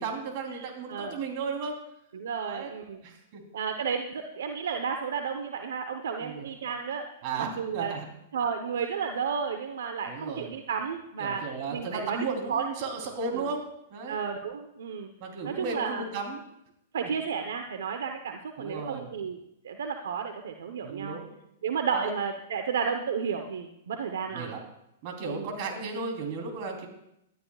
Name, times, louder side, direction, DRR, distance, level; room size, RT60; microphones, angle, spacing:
voice 1, 0.0-1.8 2.4-2.7 3.0-3.4 6.2-6.5 7.2-8.1 10.0-10.5 11.2-13.6 13.9-14.2 15.2-16.4 18.6-19.1 20.8-21.3 21.9-22.1 24.3-24.6 25.0-26.9, right 4 dB, 50° right, 2 dB, 3.7 m, -35 dB
voice 2, 0.6-1.2 2.1-3.0 3.5-7.1 7.4-7.9 8.3-11.4 11.7-12.2 12.5-12.6 13.3-13.5 14.1-15.1 15.5-16.0 16.9-19.4 19.6-21.2 21.6-24.5 25.3-25.5, right 6 dB, 80° right, 5 dB, 1.0 m, -32 dB
20.5 x 12.5 x 2.5 m, 0.81 s
hypercardioid pair, 125°, 0 cm